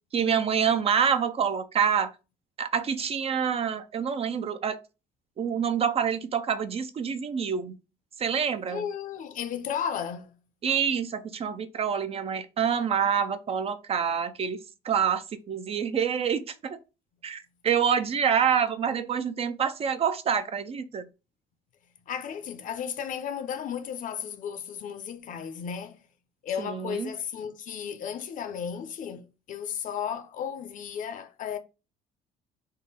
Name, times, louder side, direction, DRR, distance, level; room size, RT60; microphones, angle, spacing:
voice 1, 0.1-2.1 2.6-4.8 5.4-7.8 8.2-8.8 10.6-16.8 17.2-21.1 26.6-27.1, right 7 dB, 35° right, 0.4 m, -27 dB
voice 2, 8.7-10.3 22.1-26.0 26.4-31.6, left 8 dB, 50° left, 0.6 m, -34 dB
3.6 x 2.1 x 4.0 m
cardioid pair, 110°, 17 cm